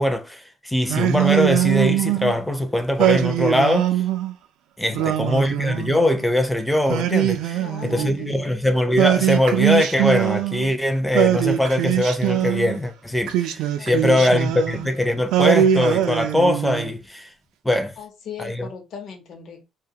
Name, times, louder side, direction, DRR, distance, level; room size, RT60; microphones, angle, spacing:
voice 1, 0.0-3.9 4.8-17.3 17.6-17.9 18.4-18.7, left 1 dB, 5° left, 0.4 m, -21 dB
Singing, 0.9-2.4 3.0-4.3 4.9-6.2 6.9-8.4 9.0-10.7 11.1-12.8 13.3-14.9 15.3-16.9, right 12 dB, 90° right, 0.3 m, -22 dB
voice 2, 4.9-5.5 7.5-8.5 13.8-14.7 18.0-19.6, left 7 dB, 65° left, 0.7 m, -38 dB
2.3 x 2.2 x 2.7 m
cardioid pair, 115°, 0 cm